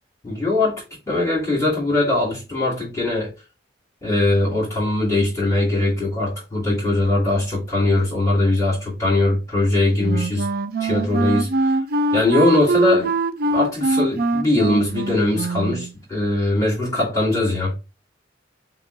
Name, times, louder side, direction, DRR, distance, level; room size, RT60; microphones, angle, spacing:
voice 1, 0.2-3.3 4.0-10.5 10.8-11.8 12.1-13.1 13.5-17.7, left 2 dB, 15° left, 2.6 m, -21 dB
Wind instrument woodwind instrument, 10.0-15.9, right 2 dB, 55° right, 0.4 m, -22 dB
5.9 x 2.5 x 3.3 m
head